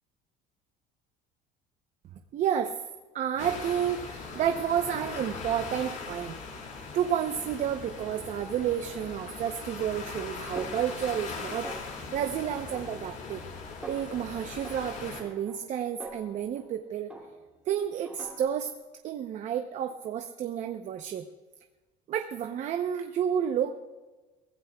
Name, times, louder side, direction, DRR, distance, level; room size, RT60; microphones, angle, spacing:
voice 1, 2.3-2.8 3.1-6.3 6.9-11.7 12.1-13.4 13.9-17.1 17.7-18.7 19.0-21.3 22.1-23.8, right 9 dB, 45° right, 6 dB, 0.8 m, -30 dB
sound 1, 3.4-15.2, left 4 dB, 50° left, 4.1 m, -40 dB
Snare drum, 10.6-11.4 11.6-12.2 12.7-13.5 13.8-14.2 14.6-16.7 17.1-17.6 18.1-18.7, right 2 dB, 5° right, 2.5 m, -45 dB
23.5 x 17.5 x 2.3 m, 1.2 s
cardioid pair, 145°, 17 cm